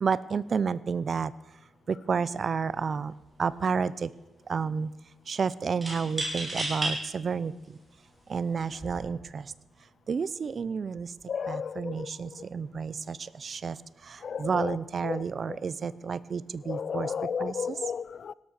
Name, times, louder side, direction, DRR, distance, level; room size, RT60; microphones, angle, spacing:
voice 1, 0.0-1.3 1.9-3.1 3.4-4.1 4.5-4.9 5.3-7.5 8.3-9.4 10.1-11.1 11.5-13.2 13.4-13.8 14.4-17.1 17.4-17.5, right 5 dB, 45° right, 19 dB, 0.6 m, -30 dB
sound 1, 2.7-2.9 3.2-3.9 5.8-6.9 7.6-7.7 8.6-9.0, right 1 dB, 20° right, 6.3 m, -33 dB
voice 2, 11.3-12.1 14.2-14.8 15.0-15.2 16.7-18.3, left 6 dB, 55° left, 22 dB, 0.4 m, -33 dB
17.0 x 12.5 x 6.6 m, 1.1 s
wide cardioid pair, 125°, 0 cm